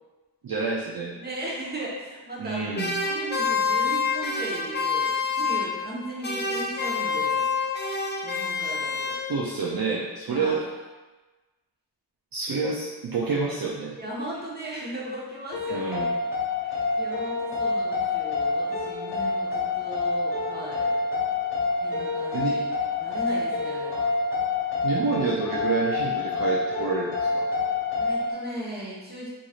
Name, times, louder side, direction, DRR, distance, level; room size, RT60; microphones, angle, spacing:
voice 1, 0.4-1.1 2.4-2.9 9.3-10.7 12.3-14.0 15.7-16.1 22.3-22.6 24.8-27.5, right 4 dB, 55° right, -5 dB, 0.5 m, -28 dB
voice 2, 1.1-2.6 3.0-7.5 8.2-9.1 10.3-10.6 13.9-16.0 16.6-20.9 21.8-22.6 23.0-24.1 28.0-29.3, right 1 dB, 25° right, -5 dB, 0.9 m, -37 dB
sound 1, 2.7-6.0 6.2-9.6, left 5 dB, 25° left, 0.4 m, -27 dB
sound 2, 15.5-28.3, left 3 dB, 75° left, 0.8 m, -27 dB
3.1 x 2.6 x 2.4 m, 1.2 s
cardioid pair, 45°, 42 cm